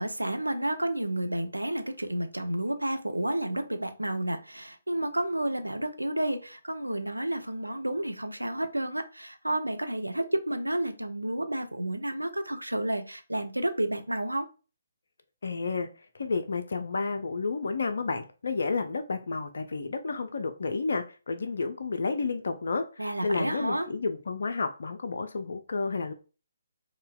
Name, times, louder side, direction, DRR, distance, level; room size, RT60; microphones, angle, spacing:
voice 1, 0.0-14.5 23.0-23.9, right 1 dB, 80° right, 0.4 m, -31 dB
voice 2, 15.4-15.9 16.2-26.1, left 4 dB, 55° left, 0.3 m, -31 dB
3.9 x 2.1 x 2.2 m
figure-of-eight pair, 140°, 0 cm